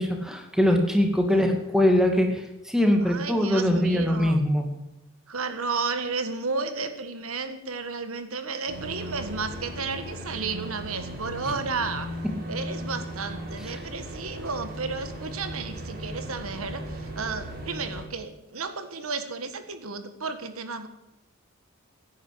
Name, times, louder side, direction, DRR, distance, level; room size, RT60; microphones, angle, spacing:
voice 1, 0.0-4.7, left 1 dB, 5° right, 3 dB, 2.4 m, -22 dB
voice 2, 3.0-4.4 5.3-12.1 12.5-20.9, right 4 dB, 80° right, 9 dB, 1.6 m, -32 dB
sound 1, 8.7-18.0, right 1 dB, 45° right, 4.3 m, -37 dB
16.5 x 10.0 x 7.9 m, 0.90 s
head